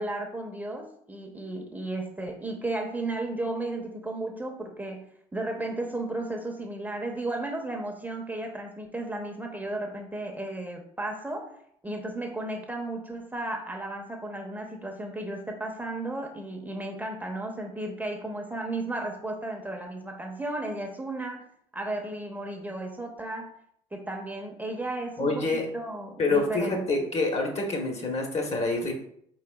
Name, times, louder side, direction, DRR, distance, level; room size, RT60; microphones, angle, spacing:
voice 1, 0.0-11.5 11.8-21.5 21.7-23.5 23.9-25.5 25.7-27.0, right 2 dB, 10° right, 2 dB, 0.8 m, -34 dB
voice 2, 25.2-25.7 26.2-28.9, left 3 dB, 45° left, 2 dB, 1.2 m, -27 dB
4.4 x 3.9 x 2.3 m, 0.67 s
hypercardioid pair, 65°, 16 cm